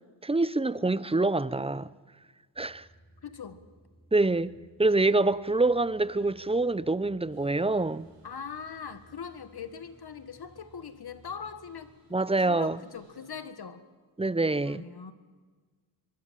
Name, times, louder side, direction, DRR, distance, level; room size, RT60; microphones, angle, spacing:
voice 1, 0.2-1.9 2.6-2.9 4.1-4.5 4.8-8.1 12.1-12.8 14.2-14.8, right 2 dB, 15° right, 0.7 m, -26 dB
sound 1, 2.5-11.9, right 1 dB, 10° left, 4.4 m, -60 dB
voice 2, 3.2-3.6 8.2-11.9 12.4-13.8 14.6-15.1, left 6 dB, 60° left, 1.8 m, -41 dB
sound 2, 7.3-13.4, right 1 dB, 40° right, 6.7 m, -62 dB
24.0 x 20.5 x 7.6 m
wide cardioid pair, 95°, 43 cm